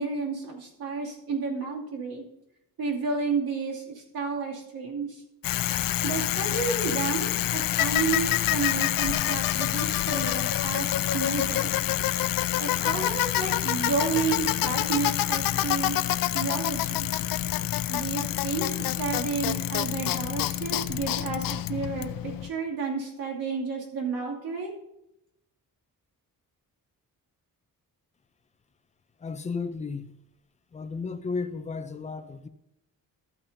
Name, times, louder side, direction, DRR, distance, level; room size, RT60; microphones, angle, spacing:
voice 1, 0.0-2.2 2.8-5.2 6.0-11.8 12.6-16.0 16.3-17.1 17.9-24.7, right 4 dB, 80° right, 2.6 m, -31 dB
Bicycle, 5.4-22.5, left 13 dB, 70° left, 0.5 m, -27 dB
voice 2, 29.2-30.2 30.7-32.5, left 4 dB, 20° left, 0.5 m, -34 dB
13.0 x 8.8 x 2.7 m
wide cardioid pair, 160°, 35 cm